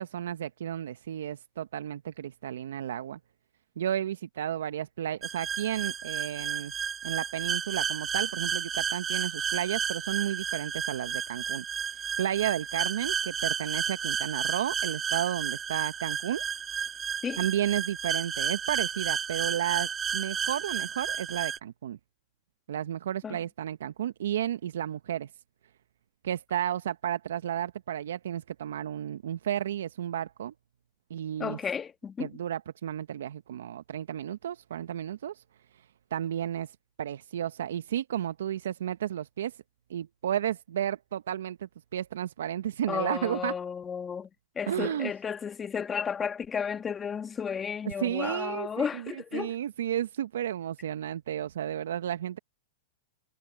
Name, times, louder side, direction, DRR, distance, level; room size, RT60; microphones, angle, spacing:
voice 1, 0.0-3.2 3.8-6.7 7.0-11.6 11.9-16.4 16.7-16.9 17.4-22.0 22.7-25.3 26.2-30.5 31.1-31.6 32.2-35.4 36.1-36.7 37.0-39.6 39.9-43.5 44.7-45.1 47.8-52.4, right 10 dB, 70° right, 1.2 m, -32 dB
slasher horror, 5.2-21.6, right 7 dB, 20° right, 2.4 m, -32 dB
voice 2, 31.4-32.3 42.9-44.3 44.6-49.6, left 7 dB, 20° left, 1.9 m, -33 dB
hypercardioid pair, 110°, 0 cm